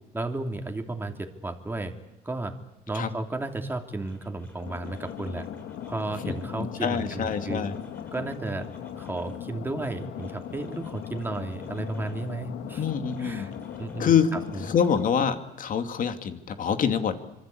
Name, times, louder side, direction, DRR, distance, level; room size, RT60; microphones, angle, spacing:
voice 1, 0.1-1.9 2.2-2.5 2.9-5.5 5.9-7.6 8.1-8.7 9.0-12.8 13.2-13.5 13.8-14.1, right 2 dB, 10° right, 4 dB, 3.1 m, -33 dB
sound 1, 3.5-3.6 4.0-6.5 6.9-9.4 9.8-12.3 12.7-15.0, left 1 dB, 15° left, 7.6 m, -54 dB
sound 2, 4.6-15.1, left 10 dB, 80° left, 1.9 m, -39 dB
voice 2, 6.2-7.8 12.8-13.5 14.0-14.3 14.6-17.1, left 7 dB, 50° left, 8 dB, 2.6 m, -26 dB
25.5 x 24.0 x 8.6 m, 1.0 s
cardioid pair, 110°, 17 cm